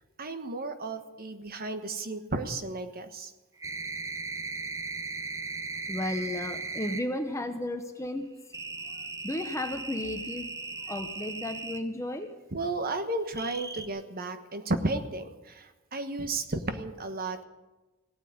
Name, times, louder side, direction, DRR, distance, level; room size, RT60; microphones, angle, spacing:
voice 1, 0.2-3.3 8.9-9.0 12.5-17.4, right 2 dB, 45° right, 8 dB, 1.3 m, -33 dB
sound 1, 3.6-7.1 8.5-11.8 13.3-13.9, right 4 dB, 15° right, 0.8 m, -37 dB
voice 2, 5.9-8.3 9.2-10.5 10.9-12.3, left 1 dB, 15° left, 6 dB, 0.9 m, -33 dB
17.0 x 9.0 x 9.4 m, 1.1 s
head